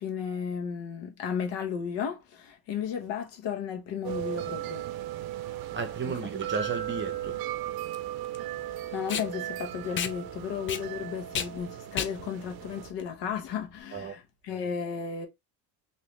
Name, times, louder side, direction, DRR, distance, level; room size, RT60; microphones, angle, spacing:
voice 1, 0.0-4.9 8.9-15.3, left 7 dB, 75° left, 1.2 m, -34 dB
sound 1, 4.0-12.9, right 13 dB, 55° right, 0.6 m, -36 dB
voice 2, 5.7-7.4 13.9-14.1, right 4 dB, 25° right, 0.8 m, -34 dB
Packing tape duct tape, 6.3-13.8, left 8 dB, 30° left, 0.4 m, -36 dB
3.2 x 2.8 x 3.1 m
cardioid pair, 115°, 43 cm